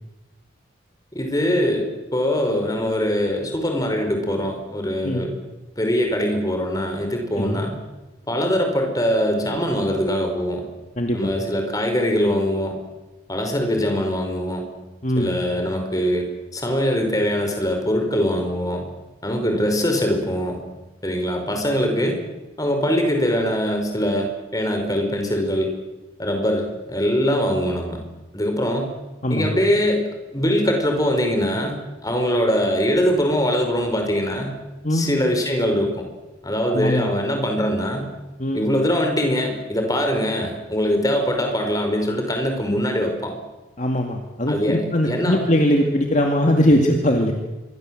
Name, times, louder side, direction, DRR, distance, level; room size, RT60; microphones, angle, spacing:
voice 1, 1.1-5.3 5.8-7.8 8.3-10.6 11.1-12.7 13.3-14.6 15.2-18.8 19.2-20.6 21.0-22.2 22.6-25.7 26.2-28.0 28.3-28.9 29.3-34.6 34.9-35.9 36.4-38.1 38.5-43.3 44.5-45.5, equal, 20° left, 4 dB, 5.3 m, -22 dB
voice 2, 11.0-11.3 15.0-15.3 29.2-29.5 34.8-35.1 36.7-37.1 38.4-38.6 43.8-47.3, equal, 40° left, 3 dB, 2.4 m, -20 dB
26.5 x 23.0 x 7.9 m, 1.1 s
head